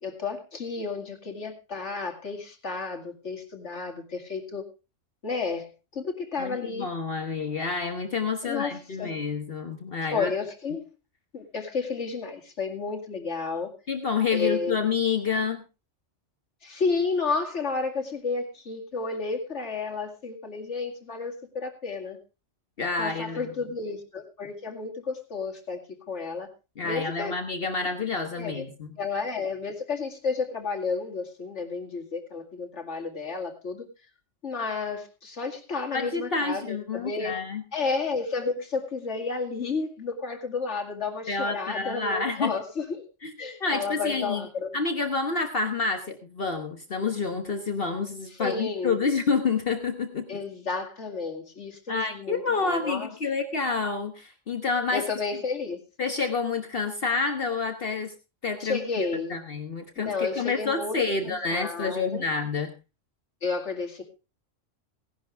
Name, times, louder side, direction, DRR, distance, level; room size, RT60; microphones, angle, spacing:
voice 1, 0.0-4.6 5.2-6.9 8.4-9.1 10.1-10.8 11.3-13.7 14.3-14.8 16.6-22.2 23.0-25.8 26.1-26.5 26.8-27.4 28.4-28.6 29.0-33.9 34.4-37.4 37.7-43.0 43.4-44.8 48.3-49.0 50.3-53.1 54.9-55.8 58.6-59.4 60.0-62.2 63.4-64.0, left 4 dB, 70° left, 3 dB, 2.6 m, -31 dB
voice 2, 6.4-10.3 13.9-15.6 22.8-23.5 26.8-28.9 35.9-37.6 41.3-42.5 43.2-43.3 43.6-44.5 44.7-50.3 51.9-55.1 56.0-58.1 58.4-59.0 59.3-62.7, left 4 dB, 50° left, 6 dB, 1.3 m, -28 dB
17.5 x 11.5 x 3.4 m, 0.30 s
omnidirectional pair, 1.2 m